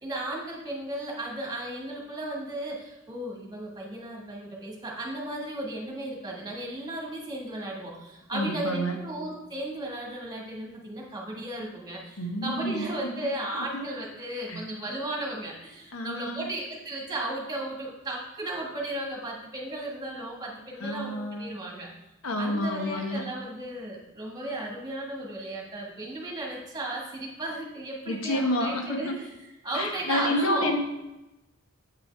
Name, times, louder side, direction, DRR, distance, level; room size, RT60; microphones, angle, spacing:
voice 1, 0.0-21.9 22.4-29.3 29.6-30.8, right 1 dB, 20° right, -2 dB, 1.6 m, -35 dB
voice 2, 8.3-9.0 12.2-12.9 13.5-13.8 14.5-14.6 15.9-16.5 20.8-21.6 22.2-23.3 28.1-29.2 29.7-30.8, left 1 dB, 90° left, 4 dB, 1.0 m, -29 dB
8.2 x 5.5 x 3.4 m, 0.99 s
head